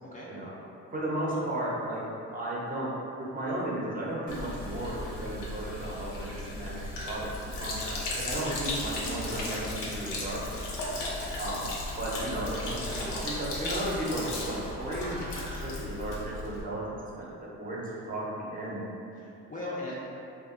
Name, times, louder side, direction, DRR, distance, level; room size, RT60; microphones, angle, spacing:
voice 1, 0.9-2.0 2.3-2.9 3.3-10.6 11.4-11.7 12.0-15.2 15.6-16.8 17.2-18.9, right 1 dB, 30° right, -6 dB, 0.6 m, -34 dB
Sink (filling or washing), 4.3-16.6, left 2 dB, 80° left, 0.6 m, -36 dB
voice 2, 19.2-19.9, left 2 dB, 25° left, -7 dB, 0.4 m, -40 dB
2.6 x 2.3 x 2.4 m, 2.8 s
cardioid pair, 90°, 30 cm